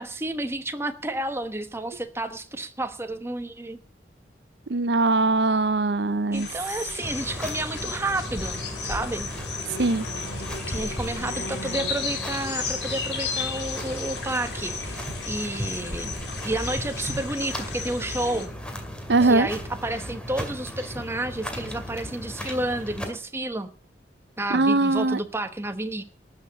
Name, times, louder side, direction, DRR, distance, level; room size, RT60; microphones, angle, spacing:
voice 1, 0.0-3.8 6.3-9.3 10.7-16.2 16.4-18.5 19.2-23.7 24.4-26.0, right 2 dB, 15° right, 8 dB, 1.0 m, -31 dB
voice 2, 4.7-6.5 9.8-10.0 19.1-19.5 24.5-25.2, right 3 dB, 70° right, 15 dB, 0.7 m, -21 dB
sound 1, 6.3-18.5, left 4 dB, 70° left, 3.7 m, -34 dB
sound 2, 7.0-23.0, equal, 5° left, 2.2 m, -36 dB
13.0 x 6.7 x 8.4 m, 0.43 s
head